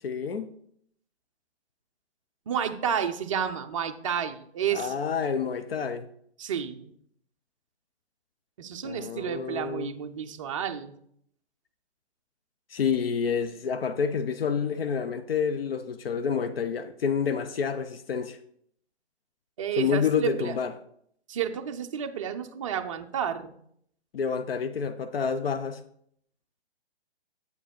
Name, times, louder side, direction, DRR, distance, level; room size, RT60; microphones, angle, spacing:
voice 1, 0.0-0.5 4.7-6.1 8.8-9.9 12.7-18.4 19.8-20.7 24.1-25.8, left 6 dB, 60° left, 0.6 m, -28 dB
voice 2, 2.5-5.1 6.4-6.9 8.6-11.0 19.6-20.6 21.3-23.5, right 8 dB, 30° right, 0.5 m, -31 dB
8.2 x 4.9 x 4.3 m
hypercardioid pair, 140°, 33 cm